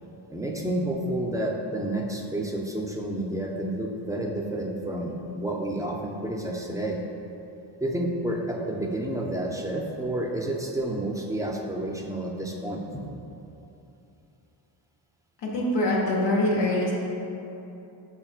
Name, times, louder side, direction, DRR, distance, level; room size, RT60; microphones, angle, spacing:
voice 1, 0.3-7.0 7.8-13.0, right 1 dB, 10° right, 0 dB, 0.4 m, -30 dB
voice 2, 15.4-16.9, left 1 dB, 65° left, -4 dB, 0.8 m, -24 dB
5.8 x 3.6 x 2.4 m, 2.9 s
cardioid pair, 75°, 46 cm